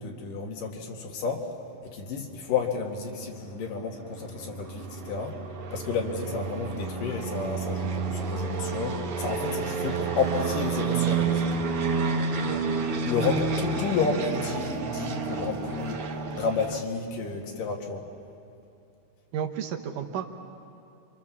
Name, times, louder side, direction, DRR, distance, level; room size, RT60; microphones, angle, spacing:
voice 1, 0.0-1.5 1.9-5.4 5.7-11.5 13.0-16.0 16.3-18.1, left 4 dB, 70° left, 2 dB, 3.5 m, -31 dB
sound 1, 3.5-16.8, right 4 dB, 55° right, 1.8 m, -30 dB
voice 2, 19.3-20.3, right 8 dB, 70° right, 5 dB, 2.6 m, -32 dB
29.5 x 25.5 x 7.2 m, 2.6 s
omnidirectional pair, 4.1 m